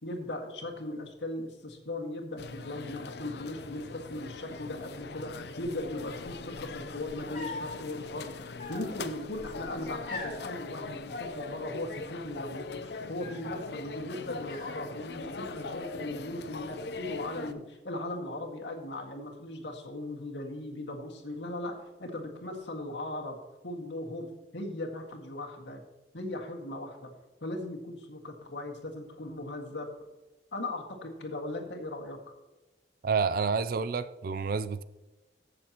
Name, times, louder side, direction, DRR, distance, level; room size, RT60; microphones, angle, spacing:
voice 1, 0.0-8.3 8.7-23.4 23.6-25.8 26.1-27.1 27.4-29.9 30.5-32.2, left 1 dB, 85° left, 1.8 m, -38 dB
sound 1, 2.4-17.5, left 3 dB, 65° left, 0.6 m, -41 dB
sound 2, 7.3-7.8 8.6-9.3 10.1-10.5 11.1-11.9 12.2-12.7 13.2-13.7 14.4-15.3 15.7-16.4, left 3 dB, 45° left, 2.9 m, -43 dB
voice 2, 33.0-34.8, right 5 dB, 55° right, 0.4 m, -29 dB
15.5 x 6.8 x 2.9 m
head